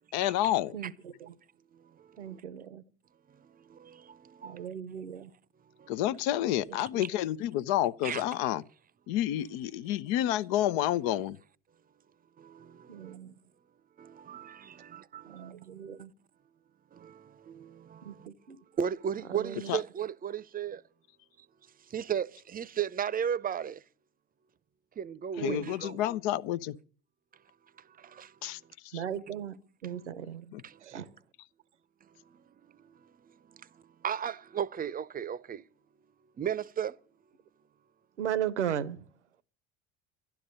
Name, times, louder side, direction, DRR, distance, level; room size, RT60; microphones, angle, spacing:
voice 1, 0.1-0.7 5.9-8.6 9.1-11.4 19.7-19.8 25.4-26.8 28.4-29.0 30.5-30.6, left 13 dB, 60° left, 0.7 m, -29 dB
voice 2, 0.7-1.3 2.2-2.8 4.4-5.3 6.9-7.0 12.9-13.3 15.3-16.1 18.0-18.6 19.3-19.7 25.4-25.7 28.9-29.6 29.8-30.5 30.8-31.1 38.2-39.0, right 9 dB, 85° right, 0.9 m, -36 dB
voice 3, 3.7-4.6 8.0-8.2 12.4-13.2 14.0-15.5 17.0-18.2 18.8-20.8 21.9-23.8 25.0-26.0 28.1-28.3 30.6-30.7 34.0-35.6 36.4-36.9, right 8 dB, 25° right, 0.7 m, -35 dB
12.0 x 11.5 x 6.5 m
hypercardioid pair, 70°, 35 cm